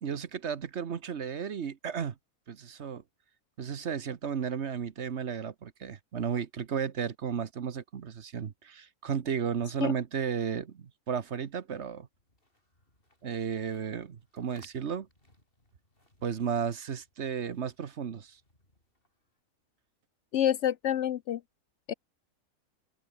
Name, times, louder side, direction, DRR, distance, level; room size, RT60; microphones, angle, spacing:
voice 1, 0.0-2.2 2.5-3.0 3.6-12.1 13.2-15.1 16.2-18.4, right 7 dB, 55° right, 1.3 m, -34 dB
sound 1, 12.1-19.4, left 1 dB, 40° left, 7.0 m, -65 dB
voice 2, 20.3-21.4 21.9-22.0, left 10 dB, 65° left, 0.8 m, -27 dB
open air
omnidirectional pair, 1.4 m